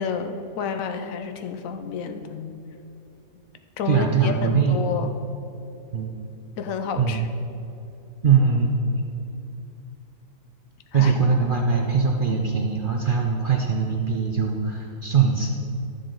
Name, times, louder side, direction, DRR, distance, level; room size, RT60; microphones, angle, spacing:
voice 1, 0.0-2.8 3.8-5.1 6.6-7.2 10.9-11.1, left 6 dB, 65° left, 7 dB, 0.9 m, -30 dB
voice 2, 3.9-4.9 5.9-6.1 7.0-7.2 8.2-9.0 10.9-15.5, right 5 dB, 65° right, 1 dB, 0.5 m, -21 dB
12.0 x 6.8 x 3.9 m, 2.8 s
omnidirectional pair, 1.7 m